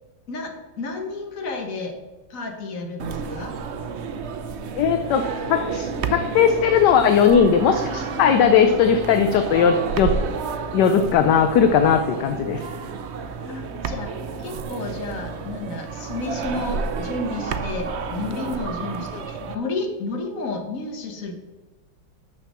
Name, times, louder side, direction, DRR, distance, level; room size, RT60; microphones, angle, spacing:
voice 1, 0.3-2.0 2.3-3.5 13.4-14.1 14.4-21.3, left 3 dB, 45° left, 4 dB, 1.6 m, -31 dB
sound 1, 3.0-19.6, right 5 dB, 90° right, 0.6 m, -30 dB
voice 2, 4.7-10.1 10.7-12.6, left 7 dB, 70° left, 7 dB, 1.2 m, -18 dB
6.6 x 6.5 x 7.3 m, 1.2 s
omnidirectional pair, 2.1 m